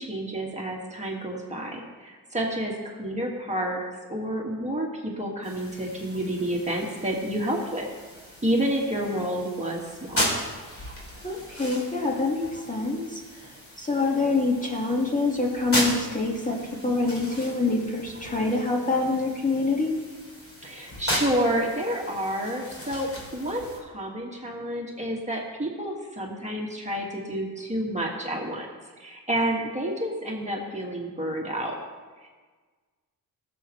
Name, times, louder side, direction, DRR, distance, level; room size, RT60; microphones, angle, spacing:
voice 1, 0.0-3.8 4.1-7.9 8.4-10.3 20.6-28.7 29.0-31.8 32.2-32.3, right 1 dB, 20° right, -1 dB, 1.8 m, -29 dB
sound 1, 5.4-23.8, equal, 35° left, 3.1 m, -36 dB
voice 2, 11.2-13.2 13.8-16.6 16.8-19.9, left 3 dB, 20° left, -2 dB, 1.8 m, -25 dB
15.5 x 7.6 x 3.1 m, 1.4 s
cardioid pair, 90°, 38 cm